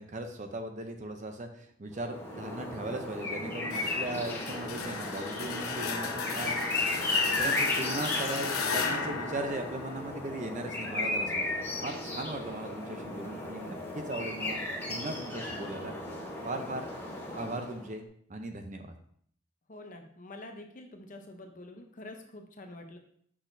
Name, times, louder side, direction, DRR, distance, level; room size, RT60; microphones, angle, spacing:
voice 1, 0.0-6.8 7.4-14.6 14.9-15.9 16.4-16.9 17.4-18.9, right 2 dB, 35° right, 5 dB, 0.6 m, -38 dB
sound 1, 2.0-17.9, left 2 dB, 10° left, 1.0 m, -35 dB
sound 2, 3.7-10.4, left 5 dB, 80° left, 0.8 m, -35 dB
voice 2, 19.7-23.0, left 2 dB, 35° left, 4 dB, 0.7 m, -46 dB
6.2 x 6.0 x 2.6 m, 0.62 s
head